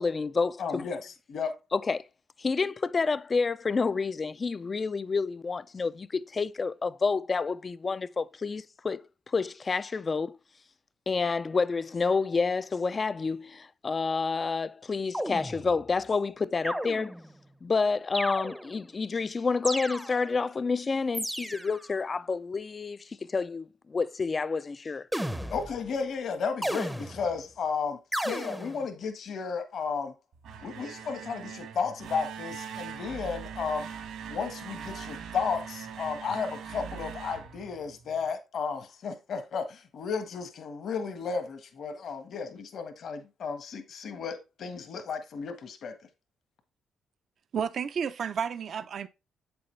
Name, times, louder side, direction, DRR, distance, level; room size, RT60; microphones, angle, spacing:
voice 1, 0.0-0.9 1.7-2.0 2.4-10.4 11.1-17.1 17.6-25.1, left 4 dB, 35° left, 0.4 m, -29 dB
voice 2, 0.6-1.6 25.5-28.0 28.2-30.1 30.6-33.9 34.3-46.0, left 5 dB, 60° left, 1.5 m, -33 dB
sound 1, 15.1-15.9 16.6-17.4 18.1-18.9 19.6-20.4 21.1-21.9 25.1-25.9 26.6-27.4 28.1-28.9, equal, 5° right, 0.7 m, -34 dB
sound 2, 30.3-38.3, right 7 dB, 80° right, 2.5 m, -41 dB
voice 3, 47.5-49.1, right 7 dB, 55° right, 0.6 m, -31 dB
7.9 x 6.9 x 3.3 m
cardioid pair, 90°, 0 cm